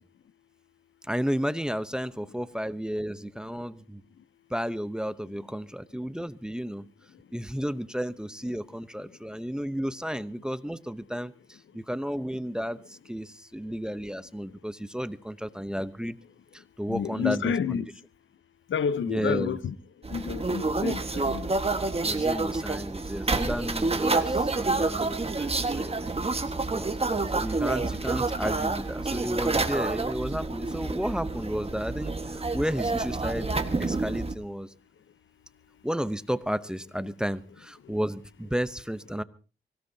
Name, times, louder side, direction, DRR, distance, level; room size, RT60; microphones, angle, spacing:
voice 1, 1.0-4.0 4.5-6.9 7.3-16.2 16.5-17.8 19.1-19.6 22.0-26.1 26.5-27.0 27.3-33.5 33.8-34.7 35.8-39.2, equal, 5° right, 0.8 m, -33 dB
voice 2, 16.9-17.9 18.7-19.7 20.1-21.5, left 7 dB, 80° left, 0.8 m, -29 dB
sound 1, 20.0-34.3, right 3 dB, 30° right, 1.5 m, -28 dB
24.0 x 17.0 x 2.8 m
cardioid pair, 80°, 20 cm